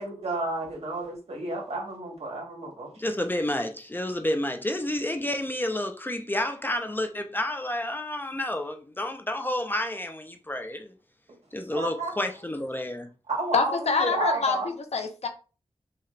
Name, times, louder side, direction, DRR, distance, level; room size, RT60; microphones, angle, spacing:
voice 1, 0.0-2.9 11.7-12.1 13.3-14.7, right 2 dB, 65° right, 1.7 m, -31 dB
voice 2, 3.0-10.9 11.5-13.1, left 1 dB, 20° left, 0.5 m, -30 dB
voice 3, 13.5-15.3, left 4 dB, 70° left, 0.8 m, -26 dB
5.7 x 2.5 x 3.2 m
wide cardioid pair, 85°, 11 cm